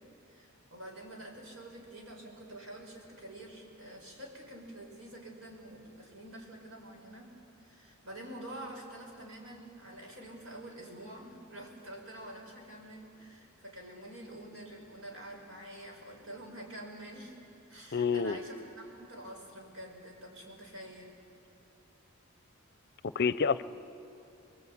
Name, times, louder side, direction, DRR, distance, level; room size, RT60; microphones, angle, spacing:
voice 1, 0.3-7.3 7.6-17.3 17.7-21.1, right 1 dB, 80° right, 0 dB, 5.2 m, -47 dB
voice 2, 17.9-18.4 23.1-23.6, left 5 dB, 55° left, 16 dB, 0.6 m, -28 dB
24.5 x 22.0 x 8.6 m, 2.7 s
head